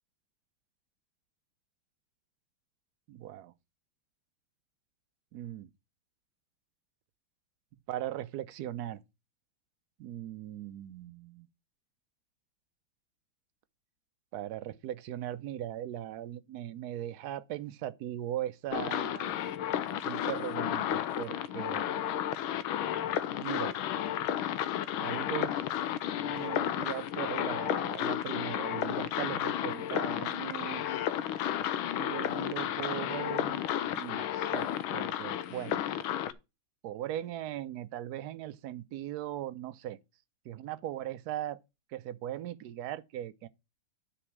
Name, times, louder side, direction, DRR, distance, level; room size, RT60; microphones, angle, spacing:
voice 1, 3.1-3.5 5.3-5.7 7.9-9.0 10.0-11.5 14.3-19.4 19.9-22.0 23.3-23.8 25.0-25.6 26.2-31.1 32.0-33.6 33.9-35.8 36.8-40.0 40.4-41.6 41.9-43.5, right 12 dB, 70° right, 0.9 m, -39 dB
sound 1, 18.7-36.3, left 11 dB, 85° left, 1.5 m, -32 dB
10.0 x 4.4 x 6.0 m
omnidirectional pair, 2.3 m